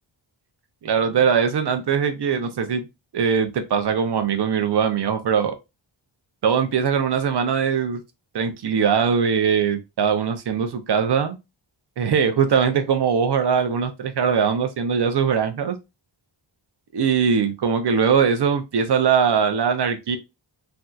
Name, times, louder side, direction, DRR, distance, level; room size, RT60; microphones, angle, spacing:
voice 1, 0.8-2.8 3.1-5.6 6.4-8.0 8.3-11.4 12.0-15.8 16.9-20.2, right 6 dB, 55° right, 0.6 m, -21 dB
3.3 x 2.7 x 2.3 m
wide cardioid pair, 170°, 48 cm